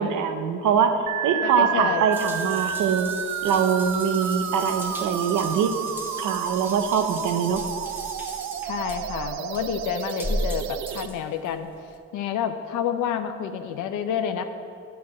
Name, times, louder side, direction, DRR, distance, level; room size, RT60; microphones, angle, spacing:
voice 1, 0.0-3.1 3.4-5.8 6.2-7.7, right 7 dB, 80° right, 7 dB, 0.8 m, -23 dB
sound 1, 1.1-11.1, right 10 dB, 65° right, 0.5 m, -31 dB
voice 2, 1.4-2.1 8.6-11.7 12.1-14.4, left 8 dB, 85° left, 8 dB, 0.7 m, -29 dB
Water tap faucet / Bathtub (filling or washing) / Drip, 2.1-12.0, equal, 5° right, 1.1 m, -37 dB
9.3 x 4.7 x 7.4 m, 2.4 s
cardioid pair, 90°, 30 cm